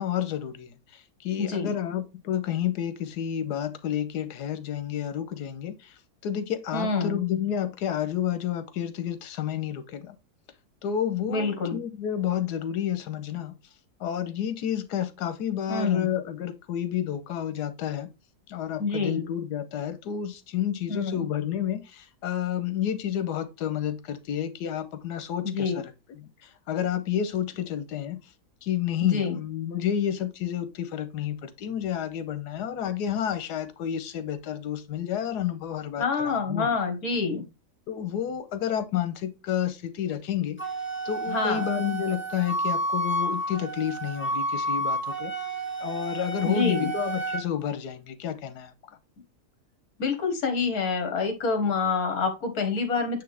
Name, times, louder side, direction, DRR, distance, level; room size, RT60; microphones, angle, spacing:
voice 1, 0.0-5.9 6.2-10.1 10.8-13.5 14.0-18.1 18.5-25.8 26.1-28.2 28.6-36.7 37.9-40.6 41.0-45.3 45.8-48.7, left 10 dB, 85° left, 1.4 m, -30 dB
voice 2, 1.4-1.8 6.7-7.2 11.3-11.8 15.7-16.1 18.8-19.2 20.9-21.3 25.4-25.8 29.0-29.4 36.0-37.5 41.3-41.7 46.4-46.9 50.0-53.2, left 4 dB, 65° left, 1.9 m, -27 dB
Wind instrument woodwind instrument, 40.6-47.4, right 2 dB, 10° left, 0.6 m, -30 dB
9.1 x 3.2 x 3.4 m
omnidirectional pair, 1.7 m